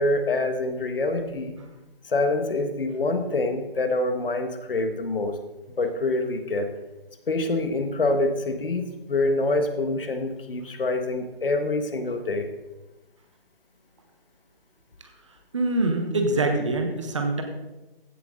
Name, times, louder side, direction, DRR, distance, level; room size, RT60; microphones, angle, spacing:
voice 1, 0.0-1.6 2.1-5.3 5.8-6.7 7.3-12.5, left 2 dB, 65° left, 7 dB, 1.5 m, -26 dB
voice 2, 15.5-17.4, right 2 dB, 30° right, 5 dB, 1.2 m, -24 dB
15.0 x 7.7 x 3.8 m, 1.1 s
hypercardioid pair, 170°, 30 cm